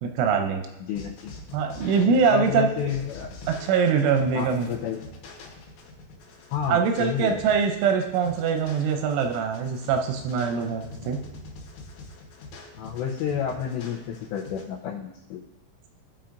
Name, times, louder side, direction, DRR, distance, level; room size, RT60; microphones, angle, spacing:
voice 1, 0.0-0.7 1.5-2.9 3.6-4.7 6.7-11.2, right 6 dB, 80° right, 4 dB, 2.9 m, -23 dB
voice 2, 0.9-1.3 2.3-3.3 4.3-5.0 6.5-7.4 12.8-15.4, left 8 dB, 90° left, -3 dB, 2.5 m, -30 dB
sound 1, 1.0-14.6, left 3 dB, 65° left, 2.9 m, -44 dB
16.0 x 5.7 x 2.5 m, 0.94 s
omnidirectional pair, 5.9 m